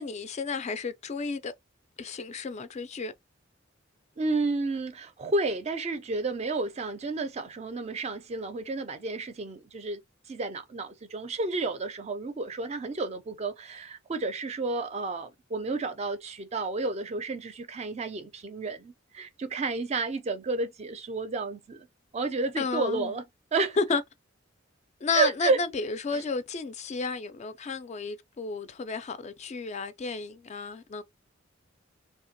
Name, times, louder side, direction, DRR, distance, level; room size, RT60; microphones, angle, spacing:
voice 1, 0.0-1.5 2.0-3.1 22.6-23.1 23.8-24.0 25.0-31.0, left 4 dB, 35° left, 0.3 m, -32 dB
voice 2, 4.2-10.0 10.3-21.9 22.1-23.2 23.5-23.8 25.1-25.6 26.1-26.2, right 3 dB, 35° right, 0.4 m, -31 dB
2.8 x 2.2 x 2.7 m
head